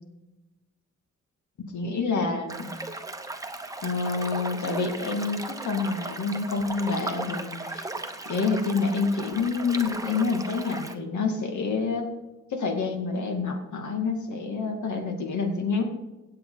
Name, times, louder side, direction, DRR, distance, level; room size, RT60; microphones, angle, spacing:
voice 1, 1.6-2.7 3.8-7.9 8.3-12.1 12.5-15.8, left 4 dB, 75° left, 3 dB, 2.2 m, -28 dB
sound 1, 2.5-10.9, right 2 dB, 10° right, 0.9 m, -37 dB
16.5 x 7.8 x 4.0 m, 1.0 s
wide cardioid pair, 115°, 30 cm